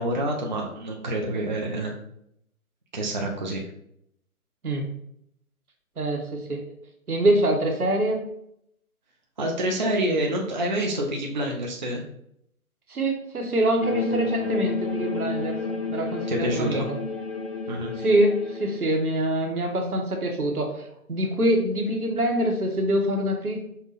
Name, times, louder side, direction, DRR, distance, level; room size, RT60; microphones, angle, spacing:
voice 1, 0.0-1.9 2.9-3.6 9.4-12.0 16.3-16.9 17.7-17.9, right 1 dB, 35° right, -1 dB, 0.5 m, -27 dB
voice 2, 6.0-6.7 7.1-8.2 12.9-15.6 15.9-17.0 18.0-23.6, right 1 dB, 80° right, 2 dB, 1.2 m, -25 dB
sound 1, 13.8-18.9, left 4 dB, 45° left, 0.4 m, -30 dB
5.4 x 2.2 x 4.1 m, 0.73 s
figure-of-eight pair, 145°, 44 cm